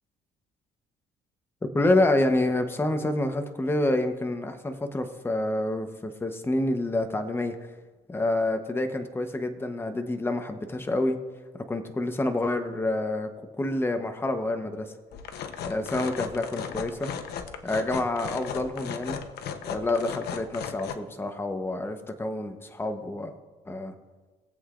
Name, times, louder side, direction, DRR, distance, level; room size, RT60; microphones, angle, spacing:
voice 1, 1.7-7.6 8.1-11.2 11.5-13.3 13.6-14.9 15.6-17.1 17.6-19.2 19.7-23.3 23.7-23.9, left 2 dB, 15° left, 7 dB, 1.0 m, -28 dB
sound 1, 15.1-21.0, left 7 dB, 75° left, 0.9 m, -36 dB
21.5 x 7.9 x 2.5 m, 1.3 s
cardioid pair, 110°, 17 cm